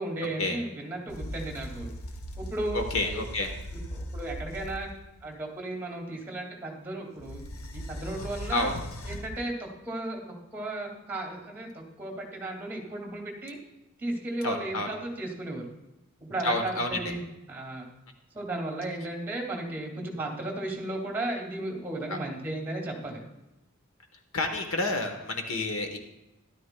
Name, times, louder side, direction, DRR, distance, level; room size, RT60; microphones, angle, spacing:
voice 1, 0.0-1.9 2.4-3.2 3.7-4.9 5.2-7.5 7.7-8.7 9.0-10.2 10.5-13.6 14.0-15.7 16.2-17.9 18.3-23.3, right 2 dB, 10° right, 1 dB, 2.1 m, -35 dB
sound 1, 1.1-5.2 7.2-9.5, equal, 90° left, 0.8 m, -39 dB
voice 2, 2.7-3.5 8.5-8.7 14.4-14.9 16.4-16.9 22.1-22.2 24.3-26.0, left 2 dB, 70° left, 5 dB, 1.1 m, -29 dB
13.0 x 12.0 x 2.2 m, 0.95 s
head